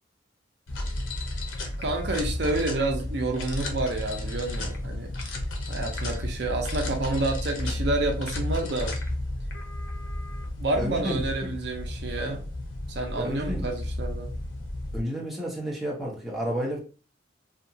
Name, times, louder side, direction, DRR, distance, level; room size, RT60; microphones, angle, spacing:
sound 1, 0.7-15.0, left 1 dB, 85° left, 0.6 m, -32 dB
voice 1, 1.8-5.1 5.7-8.9 10.6-12.4 12.9-14.3, right 2 dB, 60° right, 3 dB, 0.5 m, -29 dB
voice 2, 10.8-11.5 13.1-13.7 14.9-16.8, equal, ahead, -4 dB, 0.5 m, -31 dB
2.8 x 2.3 x 2.6 m, 0.37 s
head